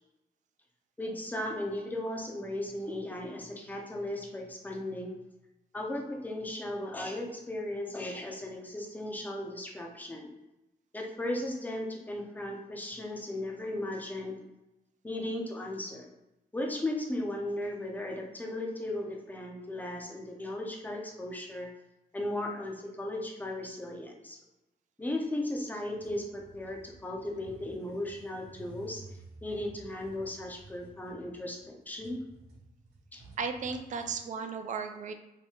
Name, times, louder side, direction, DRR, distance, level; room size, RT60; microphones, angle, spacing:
voice 1, 1.0-5.1 5.7-10.3 10.9-14.4 15.0-16.1 16.5-21.7 22.1-24.4 25.0-29.0 29.4-32.2 33.1-33.2, left 1 dB, 10° left, 1 dB, 0.5 m, -36 dB
sound 1, 25.9-34.2, right 3 dB, 75° right, 1.1 m, -53 dB
voice 2, 33.4-35.1, right 5 dB, 50° right, 7 dB, 0.4 m, -35 dB
2.8 x 2.6 x 3.4 m, 0.95 s
wide cardioid pair, 155°, 17 cm